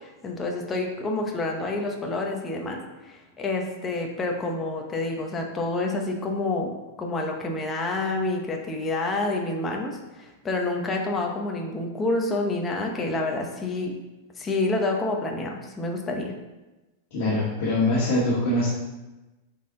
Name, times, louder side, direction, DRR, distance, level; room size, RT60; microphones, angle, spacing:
voice 1, 0.0-6.7 7.0-13.9 14.4-16.3, left 2 dB, 10° left, 1 dB, 0.7 m, -28 dB
voice 2, 17.1-18.7, left 1 dB, 45° left, -7 dB, 1.7 m, -23 dB
8.1 x 4.3 x 3.7 m, 1.1 s
supercardioid pair, 170°, 0 cm